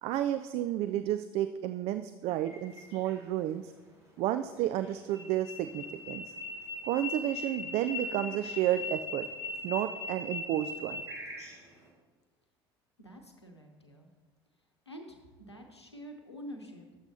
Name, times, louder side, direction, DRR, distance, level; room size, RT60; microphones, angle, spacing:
voice 1, 0.0-3.7 4.2-6.2 6.9-9.3 9.6-11.0, right 12 dB, 50° right, 11 dB, 0.4 m, -31 dB
sound 1, 2.5-3.1 4.8-11.8, left 2 dB, 85° right, 2.3 m, -40 dB
voice 2, 13.0-14.1 14.9-15.2 15.5-16.9, equal, 90° left, 4 dB, 0.9 m, -47 dB
12.0 x 7.8 x 2.8 m, 1.3 s
figure-of-eight pair, 60°, 14 cm